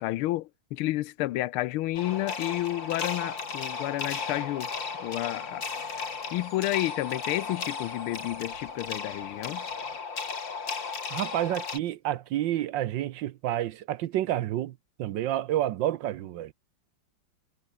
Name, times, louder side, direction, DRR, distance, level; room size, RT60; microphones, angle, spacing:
voice 1, 0.0-4.7 5.0-5.6 6.3-9.7, left 16 dB, 85° left, 1.5 m, -30 dB
sound 1, 1.9-11.8, left 5 dB, 60° left, 3.5 m, -35 dB
Bus / Idling / Screech, 2.0-10.0, right 3 dB, 40° right, 4.5 m, -56 dB
voice 2, 11.1-16.5, right 13 dB, 70° right, 1.3 m, -29 dB
omnidirectional pair, 2.3 m